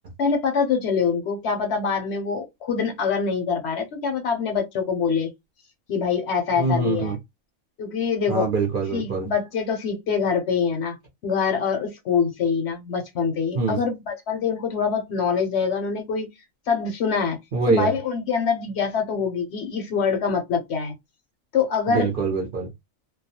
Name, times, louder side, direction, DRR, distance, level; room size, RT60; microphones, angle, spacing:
voice 1, 0.2-5.3 5.9-7.1 7.8-8.5 8.9-11.0 11.2-16.3 16.7-17.4 17.7-20.9 21.5-22.1, left 6 dB, 65° left, 0.8 m, -24 dB
voice 2, 6.6-7.2 8.3-9.3 13.5-13.8 17.5-18.0 21.9-22.7, right 4 dB, 55° right, 0.6 m, -24 dB
2.2 x 2.1 x 2.7 m
omnidirectional pair, 1.4 m